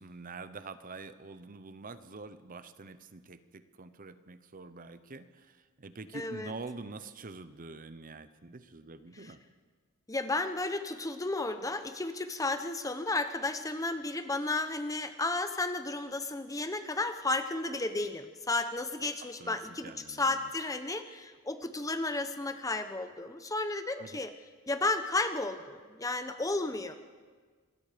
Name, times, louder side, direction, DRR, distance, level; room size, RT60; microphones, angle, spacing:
voice 1, 0.0-9.4 19.4-20.5 24.0-24.2, right 3 dB, 40° right, 12 dB, 0.8 m, -46 dB
voice 2, 6.1-6.5 9.2-9.3 10.1-24.3 24.7-26.9, left 2 dB, 15° left, 9 dB, 0.9 m, -33 dB
26.0 x 20.5 x 5.1 m, 1.5 s
head